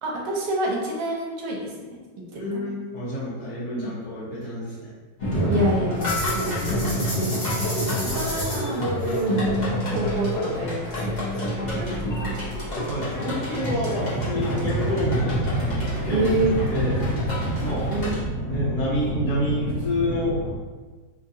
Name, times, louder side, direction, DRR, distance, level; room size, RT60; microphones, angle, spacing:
voice 1, 0.0-1.9 2.3-2.7 3.7-3.9 5.5-6.7 6.9-7.6 8.0-9.4 9.9-12.4 16.1-16.6 17.9-18.2, right 2 dB, 80° right, -2 dB, 1.3 m, -28 dB
voice 2, 2.3-4.9 6.6-7.2 12.8-15.4 16.0-16.3 16.7-17.0 17.6-17.9 18.5-20.3, left 1 dB, 60° left, -10 dB, 1.8 m, -29 dB
sound 1, 5.2-18.2, equal, 75° left, 0.4 m, -27 dB
sound 2, 12.5-20.6, right 1 dB, 20° left, 0.6 m, -28 dB
3.7 x 2.7 x 2.7 m, 1.3 s
omnidirectional pair, 2.0 m